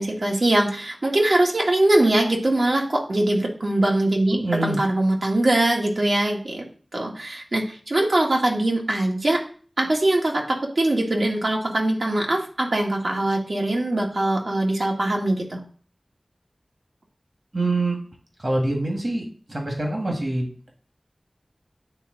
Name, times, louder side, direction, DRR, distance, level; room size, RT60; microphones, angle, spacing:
voice 1, 0.0-4.4 4.6-6.6 6.9-9.4 9.8-15.6, right 1 dB, 70° right, 0 dB, 1.5 m, -22 dB
voice 2, 4.3-4.8 17.5-18.0 18.4-20.7, right 2 dB, 55° right, 0 dB, 1.8 m, -25 dB
9.0 x 3.5 x 3.9 m, 0.43 s
wide cardioid pair, 45°, 0 cm